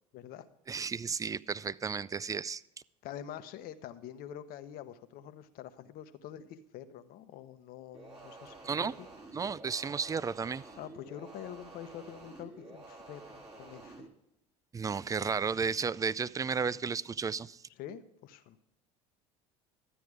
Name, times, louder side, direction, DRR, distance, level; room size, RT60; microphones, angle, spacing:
voice 1, 0.1-0.5 3.0-9.1 10.8-14.1 15.2-15.5 17.8-18.6, left 10 dB, 60° left, 10 dB, 1.0 m, -46 dB
voice 2, 0.7-2.6 8.6-8.9 9.3-10.6 14.7-17.6, right 5 dB, 20° right, 20 dB, 0.4 m, -33 dB
sound 1, 7.9-14.1, right 2 dB, 35° right, 3.2 m, -50 dB
12.5 x 9.1 x 4.9 m, 0.83 s
hypercardioid pair, 75°, 17 cm